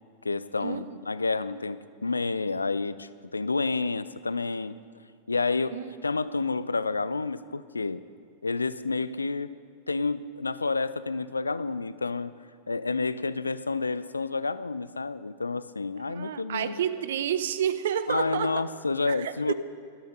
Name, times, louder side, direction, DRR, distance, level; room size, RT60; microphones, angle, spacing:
voice 1, 0.2-4.8 5.3-8.0 8.4-9.5 9.9-12.3 12.7-16.8 18.1-19.5, left 3 dB, 80° left, 16 dB, 0.4 m, -29 dB
voice 2, 16.0-18.5 19.1-19.5, right 9 dB, 60° right, 13 dB, 0.7 m, -30 dB
16.5 x 13.0 x 5.4 m, 2.3 s
figure-of-eight pair, 90°, 0 cm